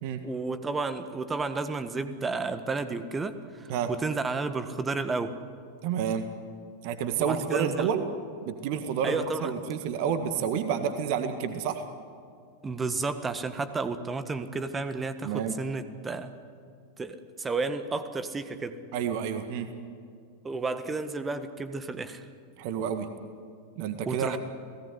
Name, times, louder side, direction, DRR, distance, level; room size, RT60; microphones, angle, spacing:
voice 1, 0.2-5.4 7.2-7.9 9.0-9.5 12.6-16.3 17.0-18.8 20.4-22.2 24.0-24.4, right 3 dB, 15° right, 11 dB, 1.6 m, -32 dB
voice 2, 5.8-6.3 6.8-8.0 8.4-11.8 15.2-15.6 18.9-19.7 22.6-23.1 23.7-24.4, right 8 dB, 45° right, 9 dB, 1.8 m, -29 dB
29.5 x 18.0 x 9.9 m, 2.3 s
figure-of-eight pair, 90°, 0 cm